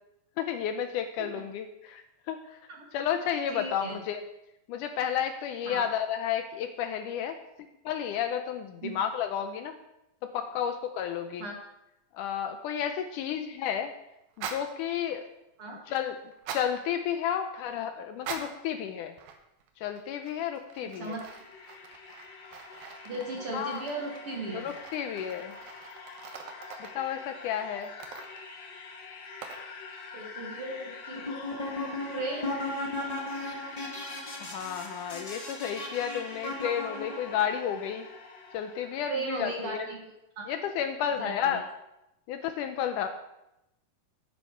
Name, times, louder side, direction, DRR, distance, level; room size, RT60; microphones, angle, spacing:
voice 1, 0.4-2.6 2.9-4.2 4.7-9.7 10.2-11.5 12.1-13.9 14.4-15.2 15.9-16.2 16.5-19.2 19.8-21.2 23.5-23.8 24.5-25.6 26.8-27.9 34.4-38.1 38.5-39.9 40.5-41.7 42.3-43.1, left 9 dB, 80° left, 7 dB, 2.0 m, -32 dB
voice 2, 3.5-4.0 5.7-5.9 8.8-8.9 11.4-11.5 15.6-15.8 21.0-21.3 23.0-24.7 30.1-31.4 32.1-32.5 39.1-40.0 40.4-40.5 41.2-41.6, right 2 dB, 50° right, -1 dB, 1.9 m, -36 dB
sound 1, 14.3-14.7 16.3-16.7 18.1-18.7 19.2-19.7 20.0-27.0 27.8-28.5 29.4-29.7, right 6 dB, 85° right, 2.9 m, -43 dB
sound 2, 20.8-39.4, left 5 dB, 60° left, 2.0 m, -46 dB
sound 3, 31.1-37.4, left 2 dB, 25° left, 0.9 m, -36 dB
11.5 x 9.5 x 4.5 m, 0.88 s
omnidirectional pair, 4.0 m